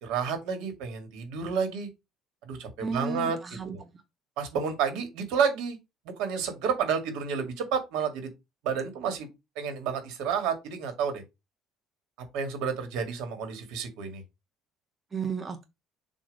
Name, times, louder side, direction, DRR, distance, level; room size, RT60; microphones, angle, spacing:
voice 1, 0.0-1.9 2.4-3.4 3.7-3.8 4.4-5.8 6.2-8.3 8.6-9.3 9.6-11.2 12.3-14.2, right 6 dB, 80° right, 1.9 m, -30 dB
voice 2, 2.8-3.9 15.1-15.6, right 5 dB, 20° right, 0.7 m, -33 dB
7.1 x 2.6 x 5.2 m
cardioid pair, 170°, 0 cm